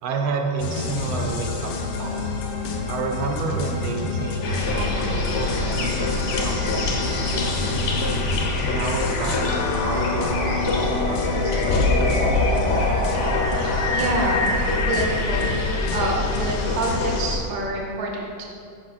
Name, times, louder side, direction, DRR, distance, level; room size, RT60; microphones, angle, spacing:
voice 1, 0.0-2.3 2.9-8.1 8.6-9.4 9.7-12.0, right 4 dB, 85° right, 2 dB, 1.5 m, -31 dB
sound 1, 0.6-17.2, left 3 dB, 85° left, 1.5 m, -29 dB
sound 2, 4.4-17.4, left 2 dB, 65° left, 0.7 m, -24 dB
voice 2, 13.9-14.5 14.9-15.4 15.9-18.4, right 2 dB, 55° right, 0 dB, 1.2 m, -27 dB
6.1 x 5.2 x 4.2 m, 2.3 s
omnidirectional pair, 2.2 m